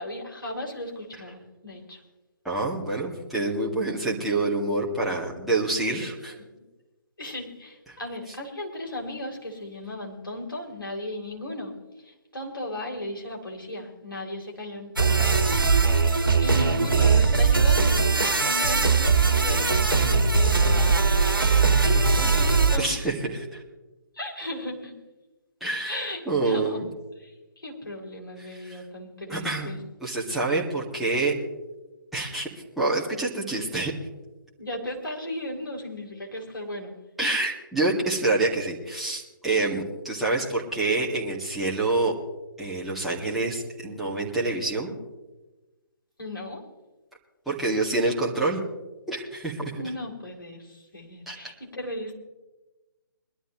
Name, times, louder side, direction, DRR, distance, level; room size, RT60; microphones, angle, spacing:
voice 1, 0.0-2.0 6.4-6.6 7.2-11.7 12.0-15.3 16.4-18.1 18.4-21.0 21.8-23.0 24.1-24.9 25.9-26.8 27.2-29.8 34.6-36.9 46.2-46.6 49.8-52.1, left 1 dB, 70° left, -1 dB, 3.8 m, -36 dB
voice 2, 2.4-6.3 22.8-23.6 25.6-26.9 28.4-28.8 29.3-29.7 30.0-31.3 32.1-32.5 32.8-33.9 37.2-42.1 42.6-44.9 47.5-48.6 49.1-49.7 51.3-51.4, right 2 dB, ahead, -7 dB, 2.1 m, -27 dB
sound 1, 15.0-22.8, right 4 dB, 70° right, 1.7 m, -20 dB
22.5 x 12.5 x 3.1 m, 1.1 s
figure-of-eight pair, 140°, 12 cm